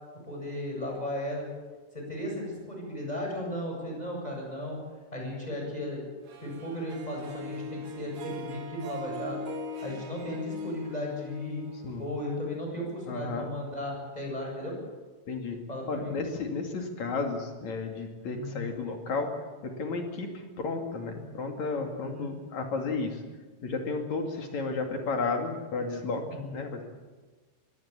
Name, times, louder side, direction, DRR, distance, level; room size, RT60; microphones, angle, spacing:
voice 1, 0.3-1.5 1.9-4.8 5.1-6.0 6.4-9.4 9.8-11.6 12.0-14.8 15.7-16.1 18.3-18.6 22.0-22.3 26.3-26.6, left 1 dB, 10° left, 0 dB, 7.4 m, -35 dB
Harp, 6.3-12.5, left 2 dB, 50° right, 3.3 m, -40 dB
voice 2, 13.1-13.5 15.3-15.6 15.9-19.3 19.6-20.3 20.6-23.2 23.6-26.2 26.5-26.8, left 4 dB, 45° left, 3 dB, 3.3 m, -32 dB
23.5 x 18.0 x 8.5 m, 1.3 s
omnidirectional pair, 5.2 m